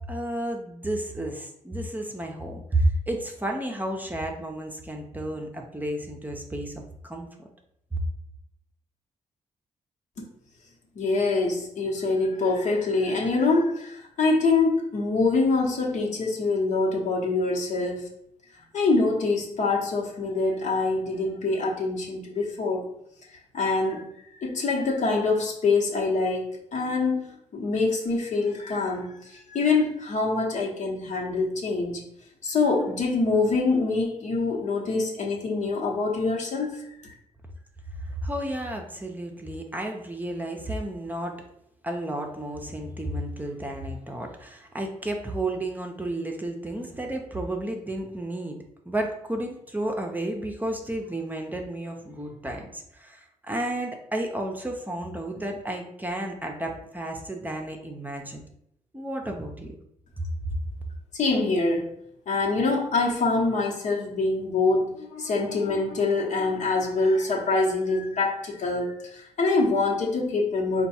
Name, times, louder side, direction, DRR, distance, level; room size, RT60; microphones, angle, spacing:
voice 1, 0.1-7.5 7.9-8.0 38.2-41.5 41.8-48.6 48.9-58.4 58.9-59.8, right 1 dB, 15° right, 2 dB, 0.7 m, -32 dB
voice 2, 10.9-18.1 18.7-22.9 23.5-24.1 24.4-32.0 32.4-37.1 61.1-61.9 62.3-70.9, left 3 dB, 65° left, -1 dB, 1.1 m, -25 dB
4.4 x 2.3 x 4.3 m, 0.74 s
cardioid pair, 95°, 13 cm